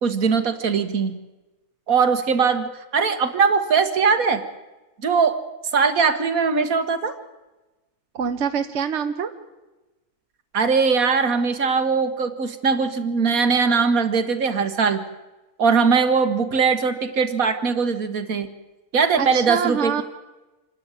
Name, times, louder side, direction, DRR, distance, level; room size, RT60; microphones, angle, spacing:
voice 1, 0.0-1.2 1.9-4.4 5.0-5.4 5.7-7.2 10.5-15.0 15.6-18.5 18.9-20.0, right 5 dB, 70° right, 9 dB, 1.9 m, -20 dB
voice 2, 8.1-9.3 19.2-20.0, right 7 dB, 55° right, 8 dB, 1.2 m, -25 dB
26.0 x 12.5 x 9.0 m, 1.1 s
omnidirectional pair, 1.5 m